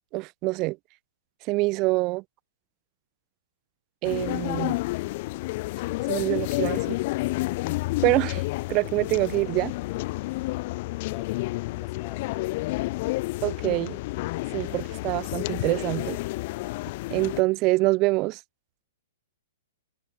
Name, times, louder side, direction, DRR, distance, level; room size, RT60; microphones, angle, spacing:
voice 1, 0.1-0.8 1.5-2.2 4.0-4.8 6.1-7.0 8.0-8.4 8.7-9.7 13.4-14.0 14.5-16.2 17.1-18.4, right 23 dB, 35° right, 0.6 m, -25 dB
sound 1, 4.0-17.4, left 21 dB, 45° left, 1.8 m, -30 dB
voice 2, 11.1-12.9, left 15 dB, 30° left, 3.9 m, -47 dB
hypercardioid pair, 115°, 0 cm